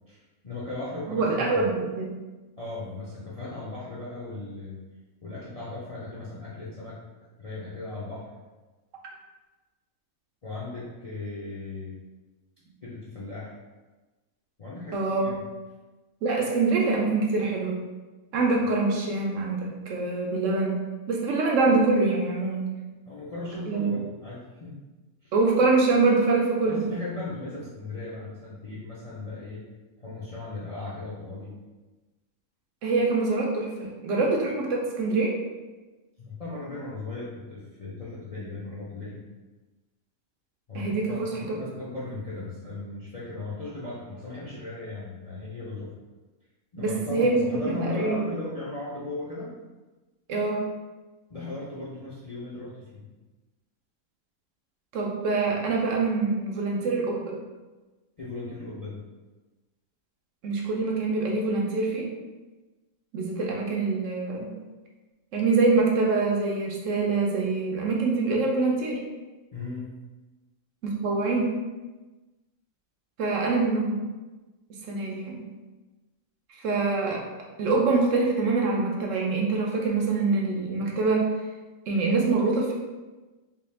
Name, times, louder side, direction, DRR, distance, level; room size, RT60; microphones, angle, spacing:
voice 1, 0.1-1.7 2.6-4.8 5.2-7.0 7.4-8.3 10.4-11.9 12.8-13.5 14.6-15.3 23.0-24.8 25.2-25.3 26.6-29.6 30.0-31.5 36.2-39.2 40.7-45.9 46.7-49.5 51.3-53.0 58.2-59.0 69.5-69.9, left 2 dB, 45° left, -8 dB, 0.4 m, -37 dB
voice 2, 1.1-2.1 14.9-15.3 16.2-17.8 18.3-22.7 23.7-23.9 25.3-26.8 32.8-35.3 40.7-41.5 46.8-48.2 50.3-50.7 54.9-57.4 60.4-62.1 63.1-64.5 65.3-69.0 70.8-71.6 73.2-74.0 74.9-75.4 76.6-77.2 77.6-81.3 81.9-82.7, right 3 dB, 70° right, -1 dB, 0.9 m, -25 dB
3.4 x 2.4 x 3.3 m, 1.2 s
omnidirectional pair, 1.5 m